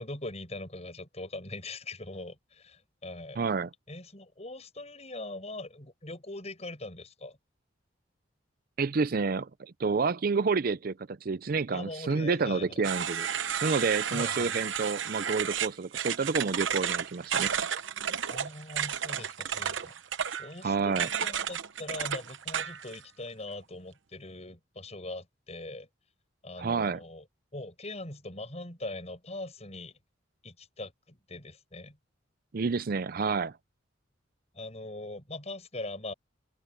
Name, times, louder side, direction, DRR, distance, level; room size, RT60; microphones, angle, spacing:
voice 1, 0.0-3.4 3.9-7.4 11.7-12.8 14.1-14.5 18.3-19.9 20.4-25.9 26.4-27.2 27.5-30.0 30.4-32.0 34.5-36.1, left 2 dB, 35° left, 7.4 m, -41 dB
voice 2, 3.4-3.7 8.8-13.3 13.6-17.5 20.6-21.1 26.6-27.0 32.5-33.5, right 4 dB, 50° right, 0.5 m, -29 dB
sound 1, 12.8-23.0, right 8 dB, 70° right, 0.9 m, -32 dB
head